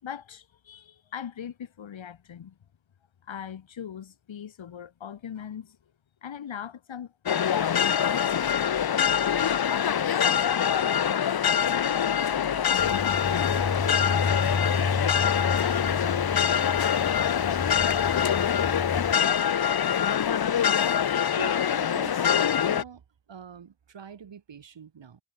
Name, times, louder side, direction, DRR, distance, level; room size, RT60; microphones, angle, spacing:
voice 1, 0.0-2.6 3.2-5.8 6.2-8.2 9.4-11.2 11.7-13.6 14.2-16.4 17.1-18.8 19.2-19.5, left 8 dB, 65° left, 3.2 m, -41 dB
sound 1, 7.3-22.8, left 9 dB, 50° left, 1.1 m, -24 dB
sound 2, 12.8-19.1, left 4 dB, 25° left, 2.2 m, -31 dB
voice 2, 21.4-23.0 23.3-25.2, right 7 dB, 60° right, 5.9 m, -43 dB
cardioid pair, 85°, 49 cm